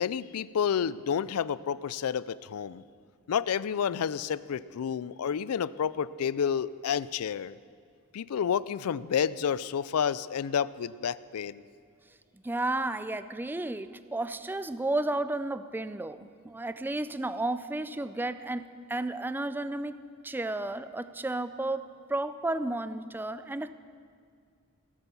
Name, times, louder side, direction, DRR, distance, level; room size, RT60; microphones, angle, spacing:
voice 1, 0.0-2.8 3.3-7.6 8.1-11.6, left 7 dB, 85° left, 18 dB, 0.4 m, -30 dB
voice 2, 12.4-23.7, right 2 dB, 10° right, 13 dB, 0.4 m, -33 dB
17.5 x 8.9 x 7.0 m, 2.2 s
head